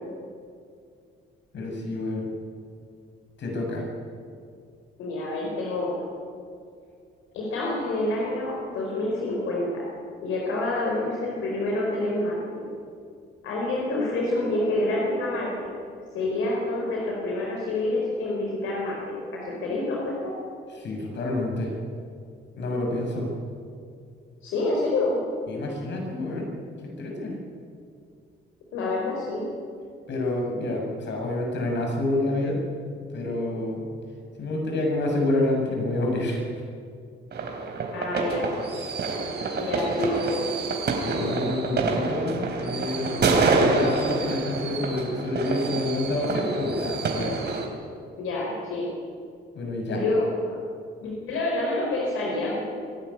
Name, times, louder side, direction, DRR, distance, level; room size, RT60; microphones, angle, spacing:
voice 1, 1.5-2.3 3.4-3.8 20.8-21.7 22.6-23.3 25.5-26.5 27.0-27.3 30.1-32.6 33.1-33.9 34.4-36.4 41.0-47.4 49.5-50.0, left 2 dB, 65° left, 0 dB, 7.1 m, -28 dB
voice 2, 5.0-6.0 7.3-9.8 10.2-12.7 13.4-15.7 16.1-19.0 19.3-20.3 24.4-25.2 28.7-29.4 37.9-38.5 39.5-40.5 48.2-48.9 49.9-50.2 50.5-50.6 51.0-52.6, left 2 dB, 90° left, -3 dB, 4.7 m, -27 dB
sound 1, 37.3-47.7, right 3 dB, 60° right, 3.8 m, -27 dB
24.5 x 12.0 x 9.9 m, 2.3 s
cardioid pair, 90°, 20 cm